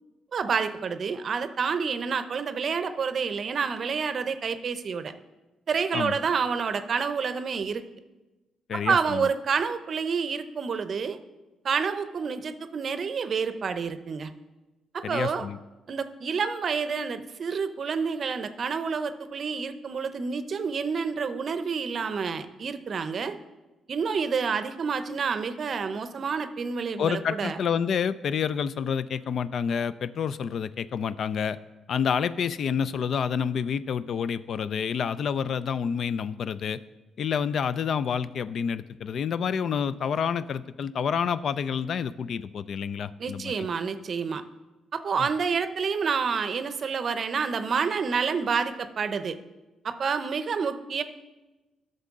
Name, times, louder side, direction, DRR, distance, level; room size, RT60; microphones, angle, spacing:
voice 1, 0.3-5.1 5.7-7.8 8.7-11.2 11.6-14.3 14.9-15.5 15.9-23.4 23.9-27.6 43.2-44.4 44.9-49.4 49.8-51.0, right 5 dB, 50° right, 11 dB, 0.6 m, -28 dB
voice 2, 8.7-9.3 15.0-15.6 27.0-31.6 31.9-36.8 37.2-43.5, left 7 dB, 60° left, 16 dB, 0.3 m, -28 dB
11.5 x 6.6 x 3.6 m, 1.1 s
cardioid pair, 90°, 0 cm